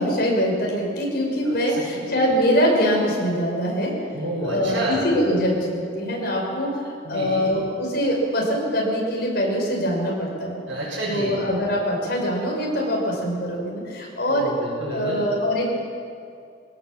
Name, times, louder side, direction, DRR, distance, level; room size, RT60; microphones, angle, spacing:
voice 1, 0.0-3.9 4.4-10.6 11.1-14.5 14.9-15.7, equal, 55° left, -1 dB, 5.9 m, -23 dB
voice 2, 1.4-2.0 4.1-5.0 7.0-7.5 10.7-11.3 14.3-15.2, right 1 dB, 85° right, -8 dB, 6.6 m, -29 dB
22.5 x 17.0 x 7.6 m, 2.4 s
head